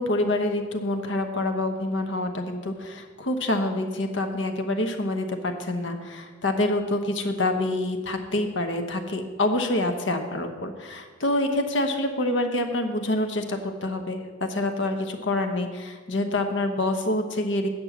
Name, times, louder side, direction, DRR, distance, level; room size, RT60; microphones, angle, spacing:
voice 1, 0.0-17.7, left 1 dB, 75° left, 6 dB, 0.9 m, -26 dB
8.9 x 5.3 x 7.1 m, 1.5 s
head